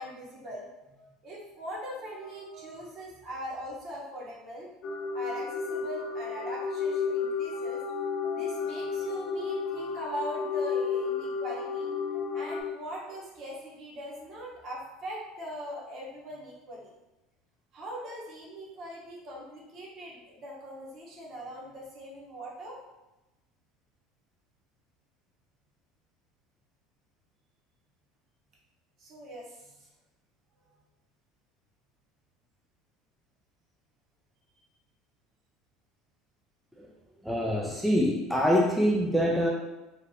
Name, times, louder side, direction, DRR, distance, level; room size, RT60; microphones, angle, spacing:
voice 1, 0.0-4.7 5.1-7.8 8.3-11.9 12.3-16.9 17.7-22.8 29.0-29.9 30.6-30.7, equal, 50° right, -4 dB, 1.0 m, -41 dB
sound 1, 4.8-12.6, left 5 dB, 60° left, 0.5 m, -32 dB
voice 2, 37.2-39.5, equal, ahead, -2 dB, 0.4 m, -25 dB
3.0 x 2.5 x 2.7 m, 1.0 s
supercardioid pair, 100°, 0 cm